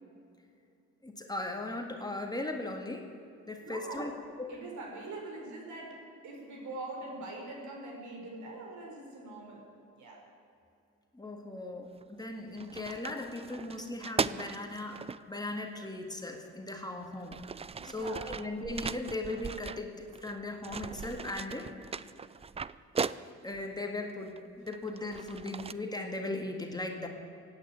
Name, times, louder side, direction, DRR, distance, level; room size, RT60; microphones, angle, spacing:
voice 1, 1.0-3.1 3.5-4.1 4.4-4.5 11.1-17.4 17.8-21.7 23.4-27.1, left 2 dB, 15° left, 2 dB, 1.8 m, -38 dB
voice 2, 3.6-4.1 4.5-9.6 10.0-10.2 17.8-18.3, right 2 dB, 75° right, 0 dB, 4.5 m, -43 dB
sound 1, 12.0-12.2 12.6-15.2 16.3-16.4 17.0-20.3 20.6-23.6 24.3-25.7, right 5 dB, 20° right, 0.4 m, -38 dB
16.5 x 9.4 x 8.7 m, 2.7 s
cardioid pair, 90°, 30 cm